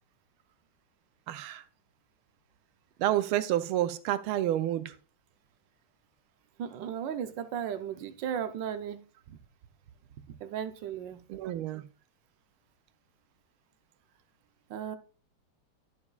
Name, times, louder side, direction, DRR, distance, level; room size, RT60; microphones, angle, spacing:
voice 1, 1.3-1.6 3.0-4.9 11.3-11.8, right 13 dB, 85° right, 11 dB, 1.5 m, -29 dB
voice 2, 6.6-9.4 10.3-11.2 14.7-15.0, right 9 dB, 70° right, 9 dB, 1.3 m, -36 dB
11.0 x 7.1 x 2.3 m, 0.37 s
omnidirectional pair, 2.3 m